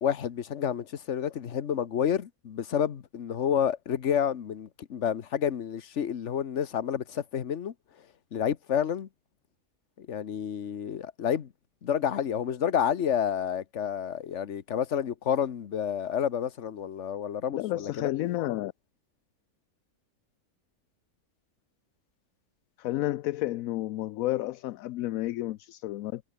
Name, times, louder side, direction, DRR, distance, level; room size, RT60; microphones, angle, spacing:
voice 1, 0.0-7.7 8.3-9.1 10.0-11.5 11.8-18.1, left 8 dB, 55° left, 1.3 m, -29 dB
voice 2, 17.5-18.7 22.8-26.2, left 15 dB, 70° left, 0.9 m, -31 dB
omnidirectional pair, 1.6 m